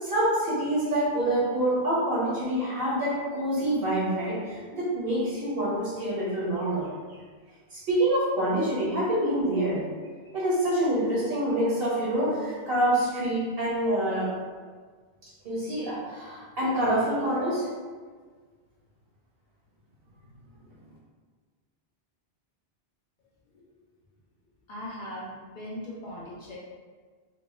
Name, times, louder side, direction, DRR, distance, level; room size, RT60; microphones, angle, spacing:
voice 1, 0.0-6.9 7.7-9.8 10.3-14.3 15.4-17.7, right 1 dB, 70° right, -7 dB, 1.3 m, -26 dB
voice 2, 24.7-26.6, left 1 dB, 55° left, -5 dB, 0.7 m, -39 dB
3.0 x 2.0 x 3.2 m, 1.5 s
omnidirectional pair, 1.0 m